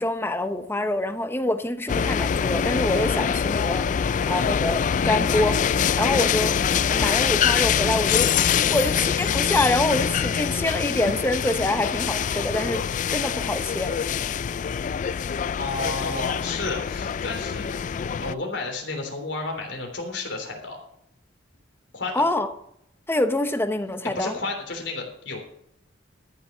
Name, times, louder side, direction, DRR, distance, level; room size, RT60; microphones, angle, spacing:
voice 1, 0.0-6.6 6.9-8.3 8.7-13.9 22.1-22.5 23.1-24.3, left 1 dB, 10° left, 9 dB, 0.9 m, -26 dB
sound 1, 1.9-18.3, left 7 dB, 45° left, 0.3 m, -24 dB
voice 2, 15.6-20.8 21.9-22.2 24.1-25.4, left 3 dB, 70° left, 2 dB, 3.4 m, -32 dB
13.5 x 6.3 x 6.3 m, 0.74 s
head